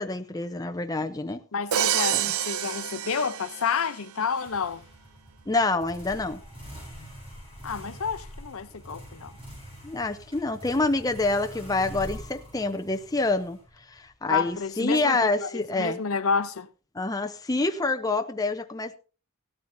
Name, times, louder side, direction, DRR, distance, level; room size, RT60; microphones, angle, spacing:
voice 1, 0.0-1.4 2.1-2.2 5.5-6.4 9.8-13.6 13.9-16.0 16.9-19.0, left 2 dB, 15° left, 0.7 m, -27 dB
voice 2, 1.5-4.8 7.6-9.3 14.3-16.7, left 5 dB, 75° left, 0.7 m, -29 dB
Crash cymbal, 1.7-3.9, right 11 dB, 80° right, 0.5 m, -28 dB
sound 1, 4.3-14.1, equal, 25° right, 7.5 m, -44 dB
16.5 x 13.5 x 2.7 m
head